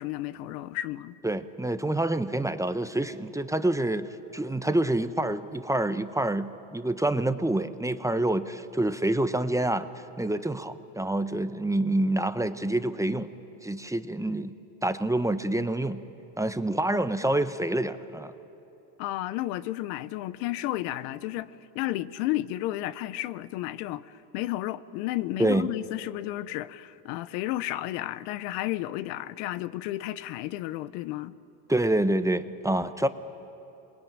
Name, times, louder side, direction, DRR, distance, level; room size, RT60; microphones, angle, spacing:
voice 1, 0.0-1.1 19.0-31.4, left 15 dB, 80° left, 0.9 m, -32 dB
voice 2, 1.2-9.9 10.2-13.3 13.6-14.5 14.8-16.0 16.4-18.3 25.4-25.7 31.7-33.1, right 1 dB, 5° right, 0.9 m, -27 dB
28.0 x 21.0 x 8.9 m
supercardioid pair, 90°, 47 cm